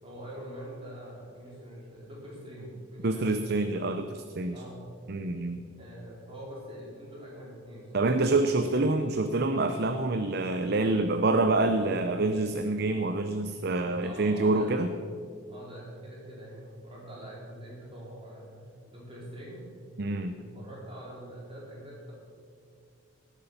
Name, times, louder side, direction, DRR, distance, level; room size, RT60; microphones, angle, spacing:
voice 1, 0.0-3.5 4.5-4.8 5.8-8.3 8.8-9.2 14.0-14.7 15.5-19.7 20.3-22.1, equal, 25° right, -5 dB, 4.0 m, -44 dB
voice 2, 3.0-4.6 5.1-5.6 7.9-14.9 20.0-20.3, right 2 dB, 50° right, 8 dB, 0.6 m, -27 dB
17.5 x 8.3 x 6.8 m, 2.3 s
head